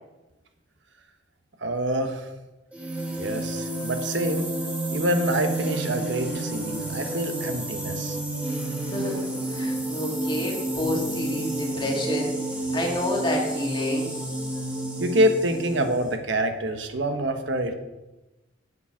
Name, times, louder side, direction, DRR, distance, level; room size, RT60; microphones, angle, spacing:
voice 1, 1.6-2.3 3.2-4.5 4.9-8.2 15.0-17.7, right 1 dB, 75° right, 6 dB, 1.1 m, -26 dB
sound 1, 2.7-16.1, right 2 dB, 10° right, 1.7 m, -30 dB
voice 2, 8.9-14.1, left 1 dB, 25° left, 0 dB, 2.0 m, -29 dB
8.0 x 7.5 x 5.8 m, 1.1 s
head